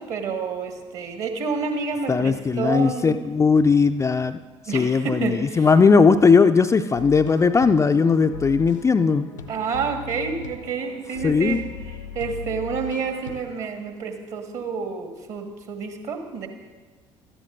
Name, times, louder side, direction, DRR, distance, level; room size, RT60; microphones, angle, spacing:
voice 1, 0.0-3.2 4.7-5.7 9.5-16.5, right 5 dB, 50° right, 5 dB, 1.6 m, -29 dB
voice 2, 2.1-4.4 4.7-9.3 11.2-11.6, left 5 dB, 20° left, 8 dB, 0.4 m, -18 dB
sound 1, 6.9-13.7, left 5 dB, 80° left, 0.7 m, -38 dB
18.0 x 13.0 x 2.6 m, 1.4 s
figure-of-eight pair, 55°, 16 cm